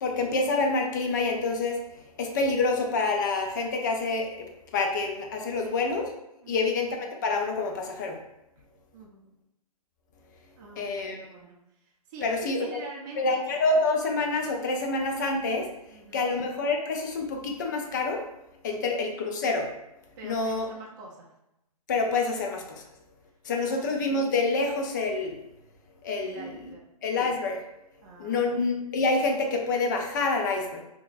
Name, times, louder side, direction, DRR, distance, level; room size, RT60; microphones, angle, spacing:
voice 1, 0.0-6.1 6.5-8.2 10.8-11.3 12.2-12.8 13.2-15.7 16.1-18.3 18.6-19.7 20.2-20.7 21.9-22.8 23.4-25.4 26.0-26.7 27.0-27.6 28.2-30.8, left 3 dB, 30° left, 2 dB, 0.5 m, -27 dB
voice 2, 8.9-9.3 10.6-11.5 11.8-13.4 15.9-16.3 18.8-18.9 20.2-21.3 23.6-23.9 26.2-26.8 28.0-28.6, right 3 dB, 30° right, -3 dB, 0.6 m, -45 dB
3.7 x 2.9 x 2.5 m, 0.86 s
hypercardioid pair, 155°, 20 cm